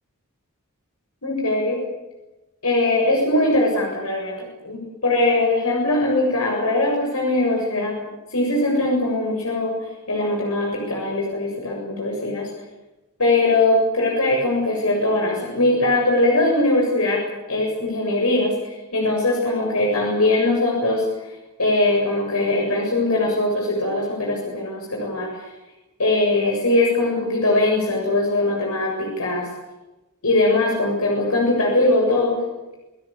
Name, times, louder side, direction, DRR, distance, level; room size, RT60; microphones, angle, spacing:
voice 1, 1.2-1.8 2.6-8.0 8.3-9.7 10.1-12.5 13.2-17.2 17.5-21.0 21.6-25.3 26.0-29.5 30.2-32.4, left 2 dB, 80° left, -1 dB, 7.6 m, -21 dB
29.5 x 18.5 x 8.6 m, 1.0 s
head